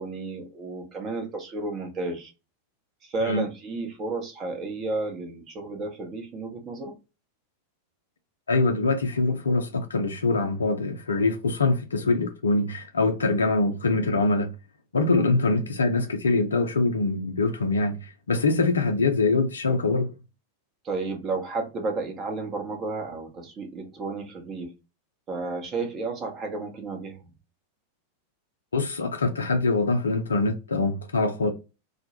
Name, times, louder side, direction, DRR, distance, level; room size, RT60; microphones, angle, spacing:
voice 1, 0.0-2.3 3.0-6.9 20.8-24.7 25.3-27.2, right 3 dB, 30° right, 0.8 m, -32 dB
voice 2, 8.5-14.5 14.9-20.1 28.7-31.5, left 3 dB, 70° left, 0.4 m, -24 dB
2.2 x 2.1 x 2.8 m
figure-of-eight pair, 90°, 0 cm